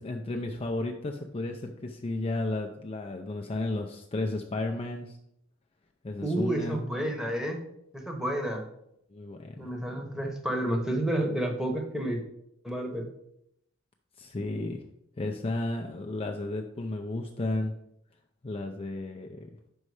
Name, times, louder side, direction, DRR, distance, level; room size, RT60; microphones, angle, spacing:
voice 1, 0.0-5.2 6.0-6.8 9.1-9.7 14.2-14.8 15.2-17.7 18.4-19.5, left 2 dB, 30° left, 3 dB, 0.5 m, -33 dB
voice 2, 6.2-7.6 7.9-8.6 9.6-12.2 12.6-13.1, right 1 dB, 5° right, 2 dB, 1.0 m, -30 dB
5.5 x 5.4 x 4.8 m, 0.77 s
head